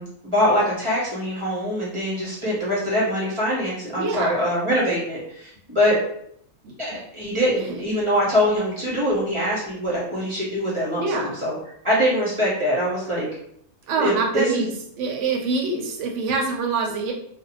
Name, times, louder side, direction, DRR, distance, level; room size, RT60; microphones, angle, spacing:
voice 1, 0.0-6.0 6.8-11.5 11.8-13.3 14.0-14.6, equal, 30° right, -7 dB, 0.6 m, -23 dB
voice 2, 4.0-4.4 6.6-6.7 11.0-11.4 13.9-14.7 15.0-17.1, right 4 dB, 65° right, 1 dB, 0.8 m, -25 dB
2.5 x 2.1 x 2.8 m, 0.70 s
omnidirectional pair, 1.6 m